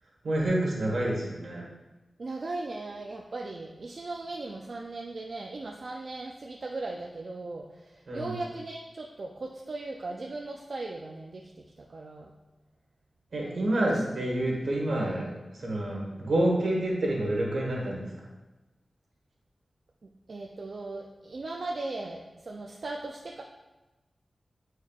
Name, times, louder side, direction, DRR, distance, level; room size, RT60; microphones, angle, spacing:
voice 1, 0.2-1.7 8.1-8.3 13.3-18.1, right 1 dB, 80° right, -3 dB, 1.6 m, -28 dB
voice 2, 2.2-12.3 13.4-13.6 13.9-14.0 14.6-14.7 20.0-23.4, right 2 dB, 60° right, 0 dB, 0.4 m, -38 dB
8.8 x 4.4 x 2.4 m, 1.1 s
wide cardioid pair, 110°, 0 cm